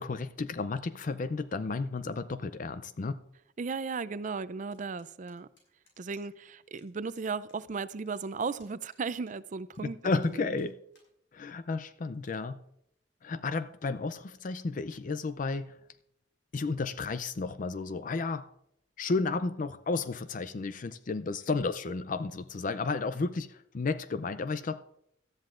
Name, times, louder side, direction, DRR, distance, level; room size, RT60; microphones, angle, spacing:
voice 1, 0.0-3.2 9.8-10.8 11.3-12.6 13.2-15.8 16.5-18.5 19.0-24.8, left 3 dB, 45° left, 0.5 m, -32 dB
voice 2, 3.6-5.5 6.0-10.6, right 4 dB, 45° right, 0.4 m, -36 dB
sound 1, 4.7-6.5 6.8-6.9 7.1-7.6 7.8-9.8 10.2-11.1 11.5-11.6 12.1-12.4, left 3 dB, 85° left, 5.9 m, -65 dB
18.0 x 13.0 x 2.5 m
head